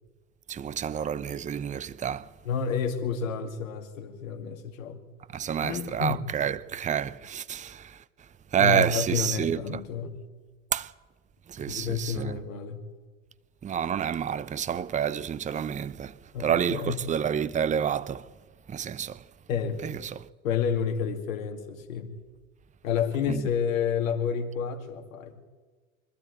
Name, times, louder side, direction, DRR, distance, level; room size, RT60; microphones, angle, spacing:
voice 1, 0.5-2.3 5.3-8.0 8.5-9.8 10.7-10.9 11.5-12.4 13.6-18.3 18.7-19.2 19.8-20.0 23.3-23.4, right 8 dB, 20° right, 0.7 m, -29 dB
voice 2, 2.4-5.0 5.6-6.2 8.6-10.1 11.6-12.8 16.3-17.0 19.5-19.8 20.4-22.1 22.8-25.3, left 7 dB, 70° left, 2.6 m, -30 dB
24.5 x 12.5 x 8.8 m
hypercardioid pair, 80°, 41 cm